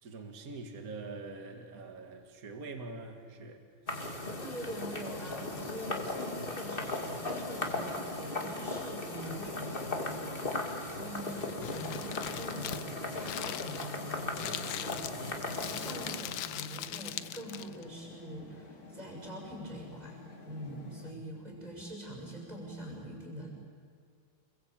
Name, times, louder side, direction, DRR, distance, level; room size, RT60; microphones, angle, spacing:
voice 1, 0.0-3.6 3.9-4.2, right 3 dB, 45° right, 5 dB, 2.3 m, -44 dB
sound 1, 3.9-16.2, left 2 dB, 25° left, 2.7 m, -37 dB
voice 2, 4.4-20.2 20.5-23.5, right 1 dB, 20° right, -3 dB, 6.6 m, -44 dB
Crumpling crinkling, 11.1-17.8, left 11 dB, 70° left, 1.5 m, -41 dB
sound 2, 11.6-21.1, left 3 dB, 45° left, 3.1 m, -50 dB
29.5 x 21.5 x 8.9 m, 2.2 s
omnidirectional pair, 2.2 m